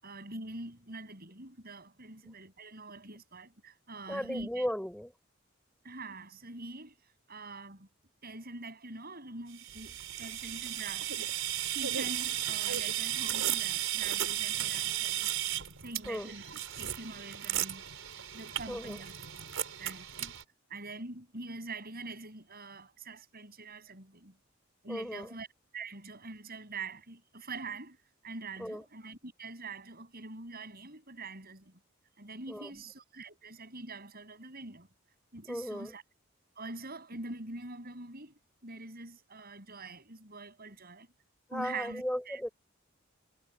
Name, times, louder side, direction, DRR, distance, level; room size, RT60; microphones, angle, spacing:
voice 1, 0.0-4.7 5.8-6.9 7.3-7.9 8.2-11.3 11.7-15.4 15.8-16.5 16.8-17.8 18.3-19.1 19.8-20.3 20.7-24.4 24.8-25.5 25.7-28.0 28.2-31.8 32.2-34.9 35.3-36.0 36.6-41.1 41.5-42.4, right 3 dB, 50° right, 7.3 m, -44 dB
voice 2, 4.1-5.1 16.0-16.3 18.7-19.0 24.9-25.3 28.6-28.8 32.5-32.8 35.4-35.9 41.5-42.5, equal, 5° left, 5.3 m, -36 dB
sound 1, 9.5-20.4, right 12 dB, 80° right, 4.9 m, -35 dB
head